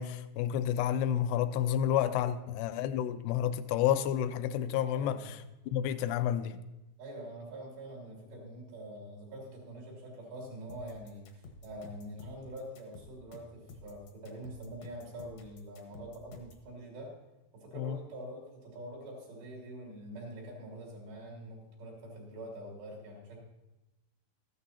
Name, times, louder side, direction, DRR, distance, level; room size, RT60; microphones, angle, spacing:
voice 1, 0.0-6.6 17.7-18.0, left 10 dB, 85° left, 2.7 m, -30 dB
voice 2, 4.9-5.4 7.0-17.2 17.5-23.4, right 1 dB, 85° right, 5.3 m, -45 dB
sound 1, 10.7-16.7, left 3 dB, 70° left, 1.6 m, -52 dB
14.0 x 12.5 x 2.9 m
omnidirectional pair, 4.7 m